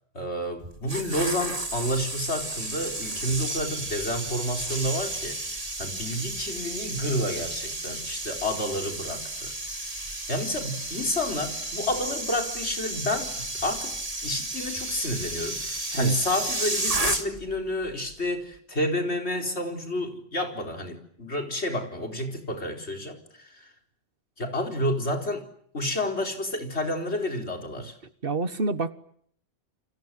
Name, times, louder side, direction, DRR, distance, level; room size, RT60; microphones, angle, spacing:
voice 1, 0.1-9.5 10.3-14.0 14.2-23.7 24.4-25.4 25.7-28.0, left 1 dB, 80° left, 4.6 m, -30 dB
sound 1, 0.6-17.6 17.8-18.1, right 2 dB, 35° right, 2.6 m, -32 dB
voice 2, 28.2-28.9, right 3 dB, 55° right, 1.6 m, -28 dB
29.5 x 25.0 x 7.7 m
omnidirectional pair, 1.1 m